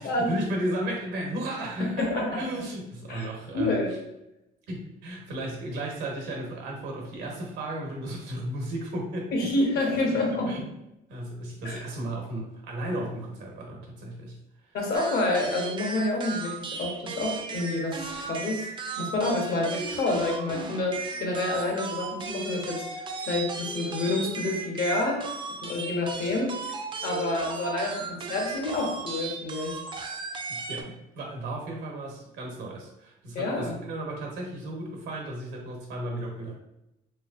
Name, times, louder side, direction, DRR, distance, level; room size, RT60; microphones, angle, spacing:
voice 1, 0.0-4.0 4.7-9.5 10.5-14.4 14.6-14.7 30.5-36.6, right 1 dB, 85° right, 0 dB, 1.1 m, -34 dB
voice 2, 2.0-2.4 3.1-3.3 3.5-3.9 9.3-10.5 11.6-11.8 14.7-18.7 19.0-25.2 25.6-26.5 27.0-29.8 33.3-33.8, left 2 dB, 65° left, 0 dB, 1.1 m, -28 dB
sound 1, 14.9-30.8, right 4 dB, 30° right, 0.4 m, -36 dB
3.1 x 3.1 x 2.5 m, 0.87 s
cardioid pair, 110°, 17 cm